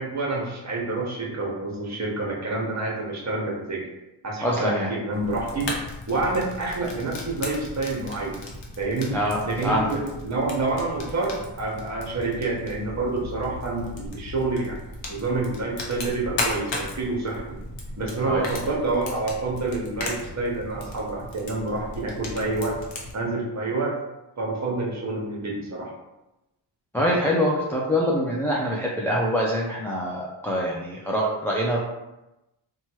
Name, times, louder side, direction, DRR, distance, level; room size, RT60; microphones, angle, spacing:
voice 1, 0.0-3.8 4.2-5.7 6.1-8.4 8.8-9.2 9.4-14.8 15.1-17.4 18.0-22.8 23.1-23.9 24.4-25.9, right 3 dB, 35° right, -2 dB, 0.9 m, -28 dB
voice 2, 4.4-4.9 9.1-9.9 18.2-18.4 26.9-31.8, equal, 5° left, -5 dB, 0.3 m, -24 dB
Fire, 5.1-23.1, left 2 dB, 60° left, 0.9 m, -36 dB
2.9 x 2.3 x 2.9 m, 0.96 s
cardioid pair, 75°, 49 cm